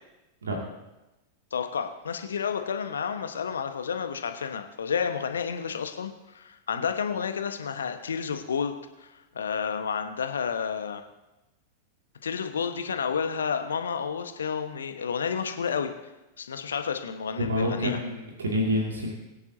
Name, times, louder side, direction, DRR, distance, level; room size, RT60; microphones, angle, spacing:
voice 1, 1.5-8.7 9.0-11.0 12.2-15.9 16.4-18.0, left 6 dB, 70° left, 7 dB, 1.1 m, -30 dB
voice 2, 17.4-19.1, equal, 70° right, 0 dB, 2.2 m, -28 dB
22.0 x 9.8 x 2.7 m, 0.99 s
figure-of-eight pair, 90°, 0 cm